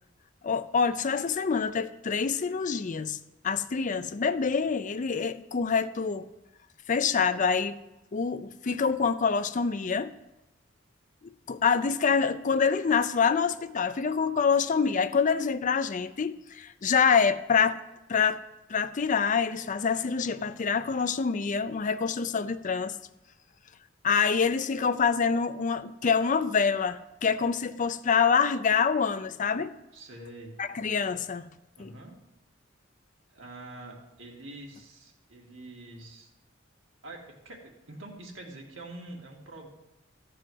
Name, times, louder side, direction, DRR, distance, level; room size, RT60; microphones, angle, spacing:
voice 1, 0.4-3.2 3.4-6.2 6.9-7.8 8.1-10.1 11.5-17.8 18.1-18.4 18.7-22.9 24.0-29.7 30.6-31.5 31.8-31.9, left 6 dB, 40° left, 0.5 m, -26 dB
voice 2, 29.9-30.5 31.7-32.2 33.3-36.3 37.0-39.7, right 2 dB, 90° right, 2.1 m, -45 dB
13.5 x 4.7 x 7.8 m
head